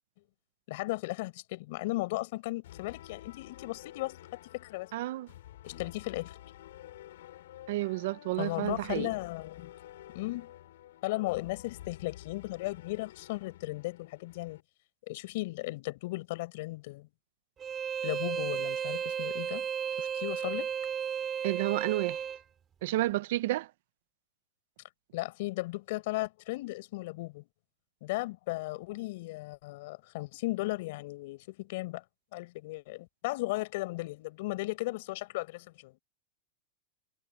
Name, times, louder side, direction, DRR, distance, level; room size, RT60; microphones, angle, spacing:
voice 1, 0.7-4.9 5.6-6.4 8.4-9.7 10.1-10.5 11.0-14.6 15.1-17.1 18.0-19.7 20.0-20.7 25.1-27.5 28.0-32.0 32.3-36.0, left 20 dB, 60° left, 5.0 m, -36 dB
sound 1, 2.6-14.6, left 13 dB, 80° left, 4.8 m, -50 dB
voice 2, 4.9-5.3 7.7-9.1 21.4-22.2 22.8-23.7, right 17 dB, 65° right, 0.6 m, -31 dB
Bowed string instrument, 17.6-22.4, right 8 dB, 20° right, 2.5 m, -34 dB
supercardioid pair, 150°, 0 cm